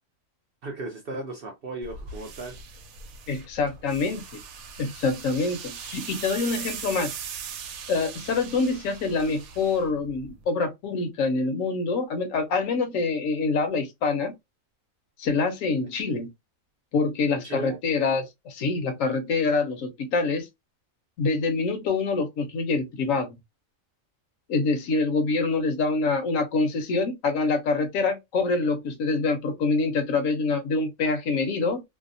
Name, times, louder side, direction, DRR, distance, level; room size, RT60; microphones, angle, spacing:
voice 1, 0.6-2.6 17.4-17.8, right 3 dB, 65° right, 0.6 m, -36 dB
sound 1, 1.8-10.4, right 6 dB, 90° right, 1.0 m, -40 dB
voice 2, 3.3-4.2 4.8-7.2 7.9-14.3 15.2-16.3 16.9-20.5 21.2-23.4 24.5-31.8, left 4 dB, 75° left, 1.0 m, -25 dB
2.7 x 2.0 x 2.5 m
omnidirectional pair, 1.4 m